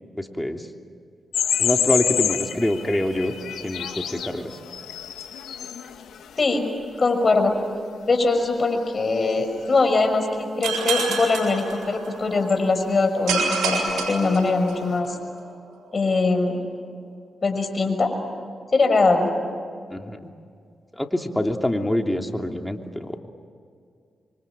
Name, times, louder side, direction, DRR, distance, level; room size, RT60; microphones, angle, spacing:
voice 1, 0.2-0.7 1.6-3.4 3.6-4.6 19.9-20.3 20.9-23.2, left 1 dB, 10° left, 3 dB, 3.0 m, -25 dB
sound 1, 1.3-6.5 7.0-7.1 9.1-9.4 9.7-9.8 10.7-11.2 12.5-12.6 13.2-13.5 13.7-14.0, left 9 dB, 85° left, 1.8 m, -28 dB
voice 2, 6.4-6.7 7.0-7.6 8.1-15.2 15.9-16.6 17.4-18.1 18.7-19.3, left 3 dB, 50° left, 6 dB, 6.1 m, -21 dB
sound 2, 10.6-12.4 13.3-15.1, right 4 dB, 90° right, 6.4 m, -27 dB
27.5 x 24.5 x 9.0 m, 2.2 s
supercardioid pair, 45°, 0 cm